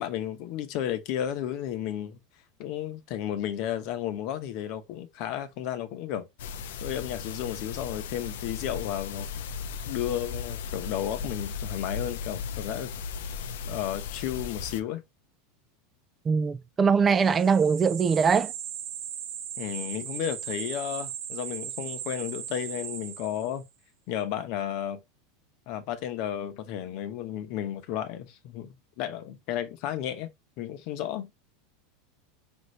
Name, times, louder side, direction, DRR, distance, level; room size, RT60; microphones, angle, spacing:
voice 1, 0.0-2.2 2.6-6.3 6.8-9.3 9.9-12.9 13.7-15.0 19.6-23.6 24.1-25.0 25.7-30.3 30.6-31.3, left 10 dB, 55° left, 0.9 m, -33 dB
sound 1, 6.4-14.8, left 6 dB, 80° left, 0.5 m, -36 dB
voice 2, 16.3-18.5, right 5 dB, 20° right, 0.3 m, -22 dB
sound 2, 17.1-23.7, right 10 dB, 55° right, 1.0 m, -38 dB
5.3 x 2.7 x 3.2 m
supercardioid pair, 130°, 0 cm